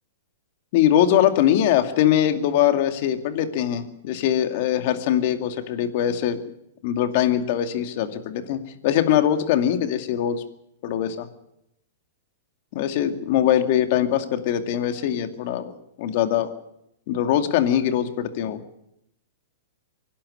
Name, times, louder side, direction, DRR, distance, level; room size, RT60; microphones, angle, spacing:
voice 1, 0.7-6.4 6.8-10.4 10.8-11.3 12.7-16.5 17.1-18.6, left 10 dB, 50° left, 8 dB, 2.3 m, -22 dB
24.0 x 11.5 x 9.7 m, 0.81 s
hypercardioid pair, 150°, 0 cm